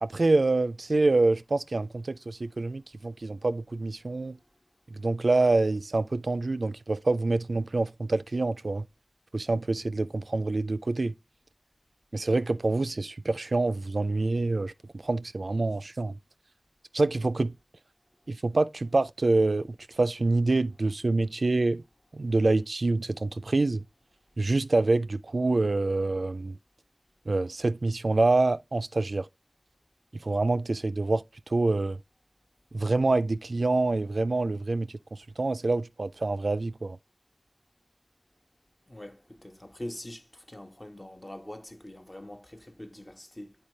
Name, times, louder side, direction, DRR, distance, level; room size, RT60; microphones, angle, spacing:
voice 1, 0.0-4.4 4.9-8.8 9.3-11.1 12.1-14.7 15.0-16.1 16.9-17.5 18.3-19.7 20.0-21.8 22.1-23.8 24.4-26.6 27.3-29.3 30.2-31.2 31.5-32.0 32.7-34.9 35.4-37.0, right 2 dB, 85° right, 0.3 m, -26 dB
voice 2, 38.9-43.5, left 1 dB, 30° left, 0.9 m, -43 dB
8.8 x 4.5 x 3.1 m
wide cardioid pair, 50°, 0 cm